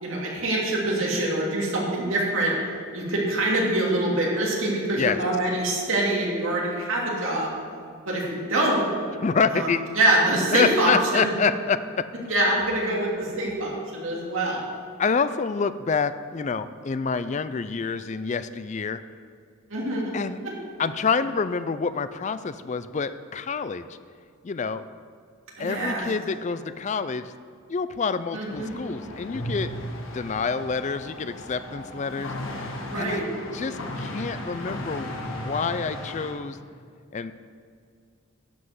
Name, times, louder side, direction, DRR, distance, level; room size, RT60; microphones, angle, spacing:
voice 1, 0.0-2.5 2.9-7.5 8.1-8.9 9.5-9.7 9.9-11.3 12.3-14.6 19.7-20.1 25.6-26.0 28.3-28.7 32.9-33.2, right 1 dB, 70° right, -3 dB, 2.8 m, -24 dB
voice 2, 9.2-9.8 10.5-12.3 15.0-19.0 20.1-20.4 20.8-23.9 24.4-24.8 25.6-27.3 27.7-29.7 30.1-32.3 33.0-33.2 33.5-36.6 37.1-37.4, left 5 dB, 35° left, 13 dB, 0.4 m, -27 dB
sound 1, 28.5-36.3, left 1 dB, 70° left, 1.5 m, -36 dB
11.5 x 5.4 x 7.9 m, 2.2 s
head